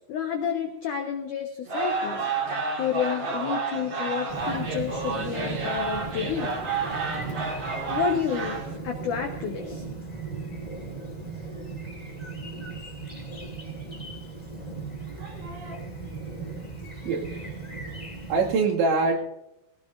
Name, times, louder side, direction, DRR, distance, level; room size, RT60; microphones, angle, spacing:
voice 1, 0.1-2.2 2.8-6.6 7.9-9.8, left 8 dB, 85° left, 3 dB, 1.8 m, -30 dB
sound 1, 1.7-8.8, right 4 dB, 50° right, 1.4 m, -30 dB
Chirp tweet, 4.3-18.5, right 3 dB, 20° left, 1.2 m, -37 dB
voice 2, 15.1-15.8 16.8-17.5 18.3-19.2, right 4 dB, 75° right, 0 dB, 4.4 m, -26 dB
19.0 x 18.0 x 2.6 m, 0.86 s
omnidirectional pair, 5.6 m